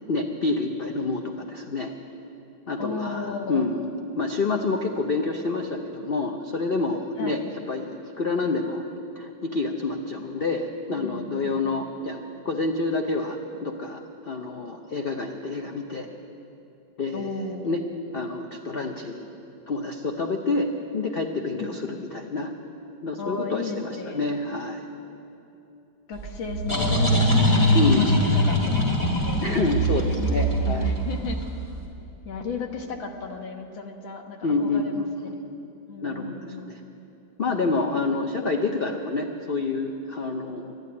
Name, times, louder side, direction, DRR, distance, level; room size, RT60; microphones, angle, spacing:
voice 1, 0.1-1.9 2.7-7.4 7.7-8.8 9.2-16.1 17.0-17.3 17.6-17.8 18.1-19.2 19.7-20.7 20.9-22.5 23.0-24.8 27.7-28.1 29.4-30.9 34.4-35.1 36.0-36.8 37.4-40.7, left 3 dB, 70° left, 3 dB, 0.5 m, -28 dB
voice 2, 2.8-3.6 7.2-7.4 11.0-11.8 17.1-17.8 21.6-22.0 23.2-24.2 26.1-27.0 27.5-29.4 30.2-30.3 30.6-31.4 32.3-35.3 35.9-36.7, left 4 dB, 85° left, 4 dB, 2.0 m, -35 dB
sound 1, 26.2-31.7, equal, 20° left, 2.0 m, -22 dB
12.0 x 11.0 x 9.5 m, 2.8 s
omnidirectional pair, 2.1 m